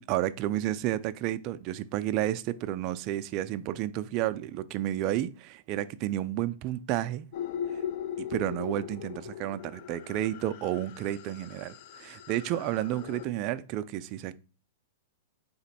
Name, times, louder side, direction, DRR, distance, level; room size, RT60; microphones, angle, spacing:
voice 1, 0.0-7.3 8.2-14.3, right 13 dB, 35° right, 0.3 m, -31 dB
sound 1, 7.3-13.3, left 9 dB, 50° left, 0.4 m, -39 dB
4.2 x 2.9 x 4.2 m
hypercardioid pair, 150°, 0 cm